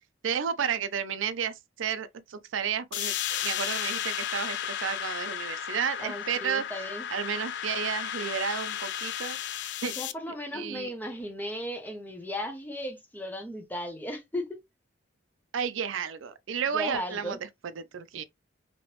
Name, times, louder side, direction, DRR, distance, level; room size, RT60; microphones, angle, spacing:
voice 1, 0.2-6.6 7.1-9.4 9.8-9.9 10.5-10.9 15.5-17.4 17.8-18.2, right 7 dB, 80° right, 0.4 m, -32 dB
sound 1, 2.9-10.1, left 10 dB, 60° left, 0.3 m, -34 dB
voice 2, 6.0-7.1 9.8-14.6 16.7-17.4, left 1 dB, 10° left, 0.6 m, -36 dB
3.1 x 2.9 x 3.0 m
head